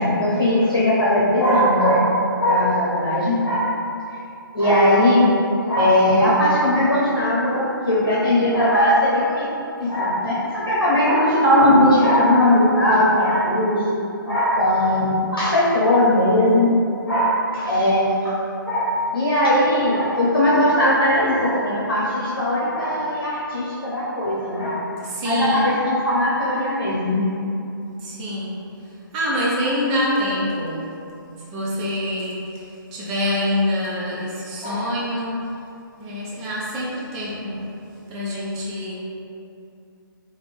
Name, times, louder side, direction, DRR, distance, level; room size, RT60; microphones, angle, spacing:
voice 1, 0.0-2.1 2.4-3.7 4.5-5.3 5.7-9.5 9.8-16.7 17.1-18.4 18.6-24.8 25.2-27.3 34.6-34.9, left 1 dB, 90° left, -9 dB, 0.9 m, -19 dB
voice 2, 25.0-25.8 28.0-28.6 29.1-30.9 31.5-35.5 36.0-37.7 38.1-39.0, left 1 dB, 20° right, -6 dB, 0.5 m, -25 dB
3.2 x 2.2 x 3.4 m, 2.7 s
figure-of-eight pair, 140°, 12 cm